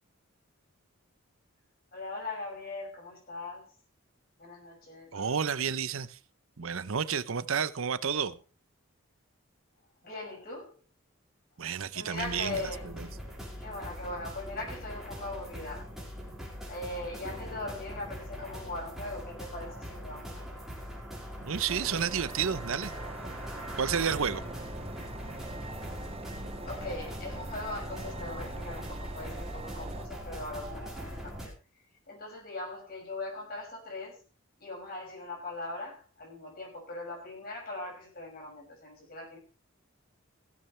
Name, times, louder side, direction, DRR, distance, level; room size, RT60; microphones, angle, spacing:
voice 1, 1.9-3.7 4.4-5.3 10.0-10.7 11.9-12.9 13.6-15.9 16.7-20.5 26.7-31.5 32.1-34.2 34.6-39.4, left 2 dB, 45° left, 6.2 m, -40 dB
voice 2, 5.1-6.2 6.6-8.4 11.6-12.6 13.0-13.1 21.4-22.9 23.8-24.4, right 7 dB, 75° right, 0.7 m, -31 dB
sound 1, 12.2-31.5, equal, ahead, 4.5 m, -41 dB
sound 2, 21.7-30.1, right 3 dB, 25° right, 0.7 m, -44 dB
16.5 x 14.5 x 3.3 m
head